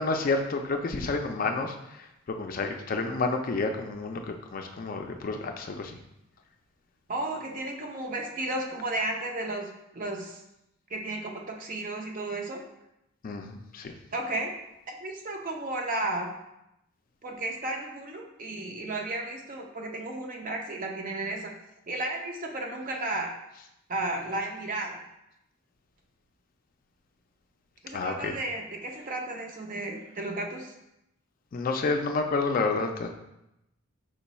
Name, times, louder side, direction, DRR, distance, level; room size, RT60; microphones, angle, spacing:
voice 1, 0.0-2.1 2.4-6.0 13.2-13.9 27.9-28.4 31.5-33.1, left 3 dB, 40° left, 4 dB, 0.4 m, -30 dB
voice 2, 7.1-10.4 10.9-12.6 14.1-14.5 14.9-16.3 17.2-21.5 21.9-23.3 23.9-25.0 27.8-30.7, right 2 dB, 40° right, 2 dB, 0.6 m, -33 dB
5.0 x 2.3 x 4.0 m, 0.86 s
head